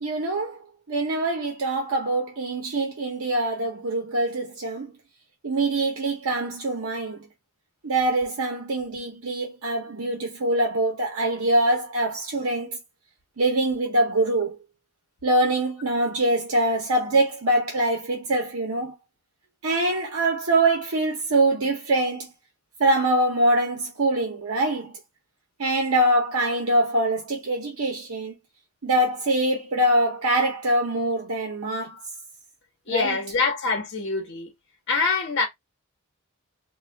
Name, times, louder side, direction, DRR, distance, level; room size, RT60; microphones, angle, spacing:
voice 1, 0.0-0.6 0.9-4.9 5.4-7.3 7.8-12.8 13.4-14.6 15.2-18.9 19.6-22.3 22.8-24.9 25.6-28.3 28.8-32.0 32.9-33.2, right 1 dB, 75° right, 0.8 m, -24 dB
voice 2, 32.9-34.5 34.9-35.5, left 4 dB, 55° left, 0.9 m, -25 dB
2.4 x 2.3 x 3.3 m
head